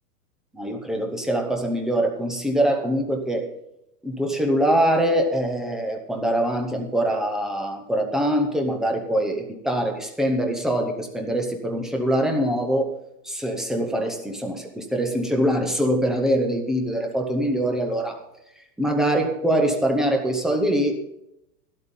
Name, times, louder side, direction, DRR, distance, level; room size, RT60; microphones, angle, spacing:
voice 1, 0.5-3.4 4.0-12.9 13.2-18.2 18.8-21.0, right 1 dB, ahead, 3 dB, 0.7 m, -23 dB
12.5 x 12.0 x 3.8 m, 0.87 s
supercardioid pair, 155°, 49 cm